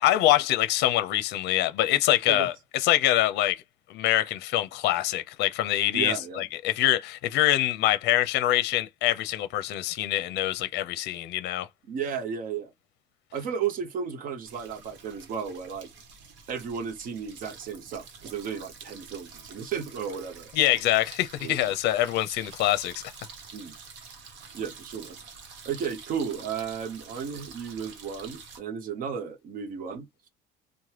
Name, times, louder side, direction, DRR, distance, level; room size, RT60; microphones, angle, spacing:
voice 1, 0.0-2.5 2.8-3.6 3.9-11.7 20.5-23.0, left 14 dB, 60° left, 0.5 m, -24 dB
voice 2, 5.9-6.4 11.9-12.7 13.3-15.9 16.5-20.5 21.4-21.7 23.5-23.7 24.5-25.2 25.6-30.3, right 7 dB, 45° right, 0.7 m, -34 dB
sound 1, 14.4-28.6, right 5 dB, 75° right, 1.0 m, -47 dB
3.2 x 2.1 x 2.8 m
cardioid pair, 170°, 19 cm